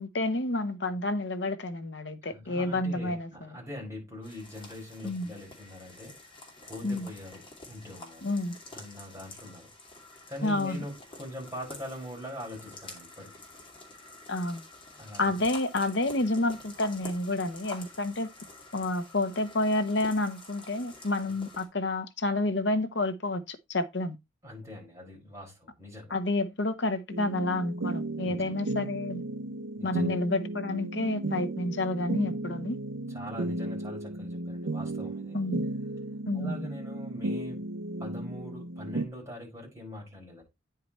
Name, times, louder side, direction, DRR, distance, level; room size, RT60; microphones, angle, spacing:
voice 1, 0.0-3.3 5.0-5.3 6.8-7.1 8.2-8.5 10.4-10.8 14.3-14.6 15.2-18.3 18.7-24.2 26.1-29.2 29.8-32.8 35.3-35.7 36.3-36.7, left 2 dB, 60° left, 1.0 m, -29 dB
voice 2, 2.2-6.2 6.7-8.3 8.7-9.7 10.3-13.3 14.9-15.4 24.4-26.2 28.2-28.5 29.8-30.2 33.1-35.4 36.3-37.6 38.0-40.4, equal, 15° right, 5.4 m, -43 dB
sound 1, 4.2-21.7, left 2 dB, 25° left, 2.6 m, -48 dB
sound 2, 27.1-39.1, right 1 dB, 75° right, 0.7 m, -34 dB
9.4 x 4.8 x 4.4 m
head